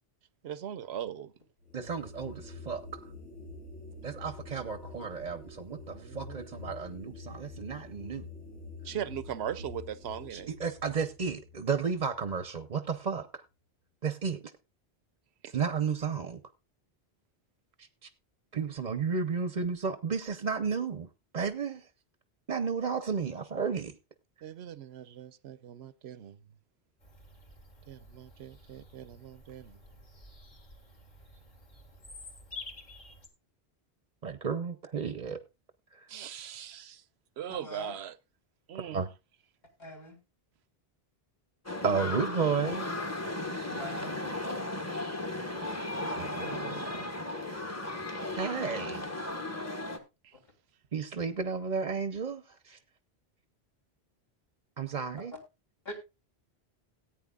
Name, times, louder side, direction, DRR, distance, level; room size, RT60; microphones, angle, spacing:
voice 1, 0.4-1.3 4.9-5.1 5.7-6.8 8.8-10.5 15.4-15.5 24.4-26.4 27.9-29.8 36.1-37.0 37.4-38.2 38.7-39.0 50.2-50.4, right 9 dB, 80° right, 1.0 m, -40 dB
sound 1, 1.6-12.9, left 3 dB, 90° left, 4.1 m, -47 dB
voice 2, 1.7-3.1 4.0-8.3 10.3-13.4 14.0-14.4 15.5-16.4 17.8-18.1 18.5-21.1 21.3-21.8 22.5-23.9 34.2-35.4 35.9-36.1 38.9-39.1 41.8-42.8 46.2-46.8 48.3-49.0 50.9-52.8 54.8-55.3, right 5 dB, 45° right, 0.8 m, -33 dB
Bird vocalization bird call bird song, 27.0-33.3, left 3 dB, 45° left, 2.2 m, -50 dB
voice 3, 37.5-38.0 39.8-40.2 43.7-44.1 46.0-47.1 55.9-56.0, left 1 dB, 60° left, 3.5 m, -44 dB
sound 2, 41.7-50.0, left 2 dB, 15° left, 1.3 m, -36 dB
18.0 x 9.0 x 2.3 m
omnidirectional pair, 1.1 m